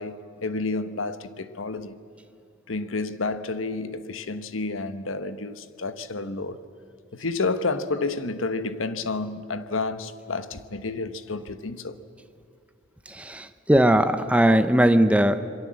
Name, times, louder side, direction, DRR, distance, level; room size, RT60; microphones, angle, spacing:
voice 1, 0.0-2.0 2.7-6.6 7.1-12.0, left 3 dB, 80° left, 1.1 m, -30 dB
voice 2, 13.1-15.4, right 1 dB, 5° right, 0.9 m, -19 dB
27.0 x 22.5 x 7.6 m
head